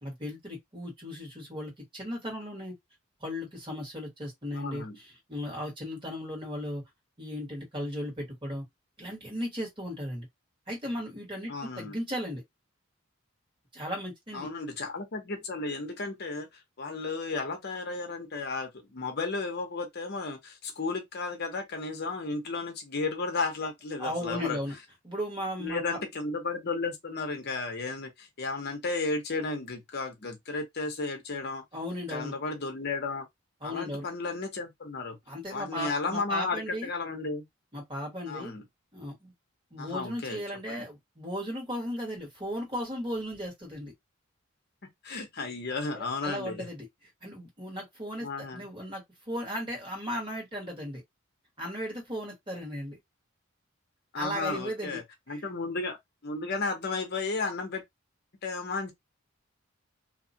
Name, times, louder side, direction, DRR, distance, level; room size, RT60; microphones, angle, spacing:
voice 1, 0.0-2.7 3.2-6.8 7.2-8.6 9.0-10.3 10.7-12.4 13.7-14.5 24.0-24.7 25.0-26.0 31.7-32.3 33.6-34.1 35.3-36.9 37.7-38.5 38.9-39.3 39.7-43.9 45.9-51.0 51.6-53.0 54.2-55.0 55.3-55.4, equal, 25° right, 1.5 m, -36 dB
voice 2, 4.5-5.0 11.5-11.9 14.3-16.5 16.8-24.6 25.6-31.6 32.1-33.3 33.6-35.2 35.5-37.4 38.3-38.6 39.8-40.4 40.7-40.8 45.0-46.6 48.2-48.6 54.1-55.0 55.3-56.0 56.2-57.8 58.4-58.9, left 3 dB, 50° left, 0.7 m, -33 dB
2.8 x 2.3 x 2.7 m
head